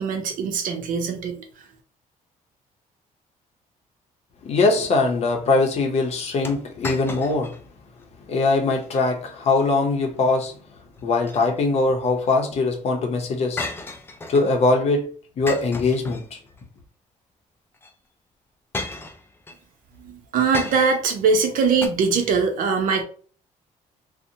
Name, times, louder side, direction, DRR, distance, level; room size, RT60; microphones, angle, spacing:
voice 1, 0.0-1.4 20.0-23.0, right 5 dB, 75° right, 0.6 m, -22 dB
voice 2, 4.4-7.5 8.3-10.5 11.0-13.6 14.3-15.1 15.4-16.4, left 3 dB, 50° left, 0.7 m, -21 dB
sound 1, 6.4-7.6 8.0-8.1 8.7-9.1 11.0-11.8 13.6-14.6 15.5-16.6 17.8-17.9 18.7-19.6 20.5-21.1 21.8-21.9, left 2 dB, 15° left, 0.4 m, -34 dB
2.7 x 2.1 x 2.6 m
cardioid pair, 125°, 14 cm